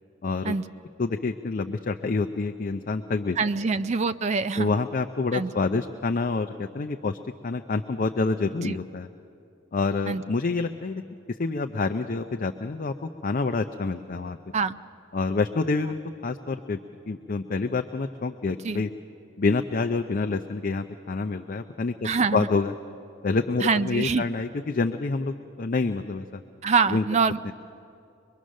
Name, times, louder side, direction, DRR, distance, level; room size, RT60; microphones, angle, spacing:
voice 1, 0.2-0.6 1.0-3.4 4.6-7.2 7.4-9.1 9.7-11.0 11.4-14.4 15.1-16.8 17.1-18.9 19.4-22.7 23.2-26.4 26.9-27.0 27.4-27.5, left 3 dB, 45° left, 6 dB, 0.5 m, -27 dB
voice 2, 3.4-4.7 5.3-5.5 8.6-8.8 10.1-10.2 14.5-14.8 18.6-18.8 22.0-22.5 23.6-24.3 26.6-27.5, right 5 dB, 35° right, 12 dB, 0.4 m, -25 dB
23.5 x 22.0 x 6.4 m, 2.6 s
head